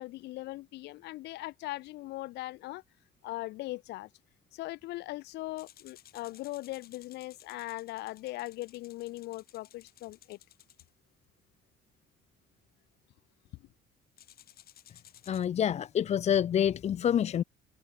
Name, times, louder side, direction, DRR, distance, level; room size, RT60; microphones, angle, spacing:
voice 1, 0.0-2.8 3.2-4.1 4.5-10.4, left 18 dB, 85° left, 4.7 m, -40 dB
sound 1, 5.6-10.9 14.2-15.5, left 12 dB, 65° left, 6.7 m, -57 dB
voice 2, 15.3-17.4, left 9 dB, 40° left, 0.5 m, -27 dB
cardioid pair, 110°, 17 cm